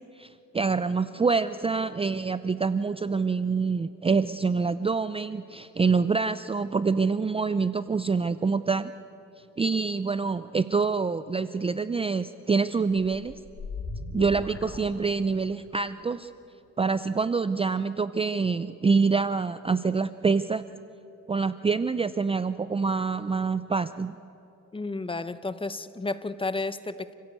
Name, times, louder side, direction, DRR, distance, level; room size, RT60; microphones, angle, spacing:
voice 1, 0.2-8.9 9.6-13.3 14.1-16.3 16.8-20.7 21.3-24.2, right 4 dB, 20° right, 13 dB, 0.5 m, -26 dB
sound 1, 12.9-15.6, left 3 dB, 50° left, 3.1 m, -38 dB
voice 2, 24.7-27.1, left 3 dB, 15° left, 13 dB, 0.9 m, -32 dB
30.0 x 16.0 x 8.3 m, 2.9 s
cardioid pair, 90°, 30 cm